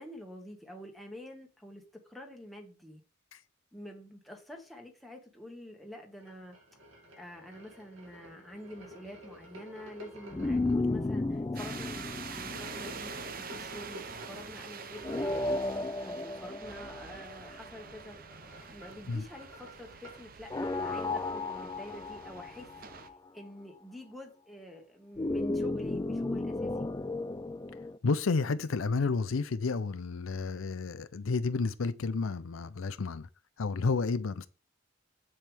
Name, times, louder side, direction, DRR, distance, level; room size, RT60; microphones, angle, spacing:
voice 1, 0.0-3.0 3.7-6.6 7.2-13.1 13.4-15.6 16.0-18.2 18.7-22.7 23.0-23.1 23.3-26.9, left 1 dB, ahead, 1.7 m, -47 dB
sound 1, 6.2-10.7 12.4-15.6 17.7-20.3, equal, 75° right, 2.6 m, -50 dB
sound 2, 10.3-13.6 15.0-17.9 20.5-23.1 25.2-28.0, left 2 dB, 20° left, 0.3 m, -34 dB
sound 3, 11.6-23.1, right 6 dB, 45° right, 0.7 m, -46 dB
voice 2, 28.0-33.3 33.6-34.5, left 4 dB, 75° left, 0.5 m, -31 dB
7.8 x 7.3 x 3.5 m
head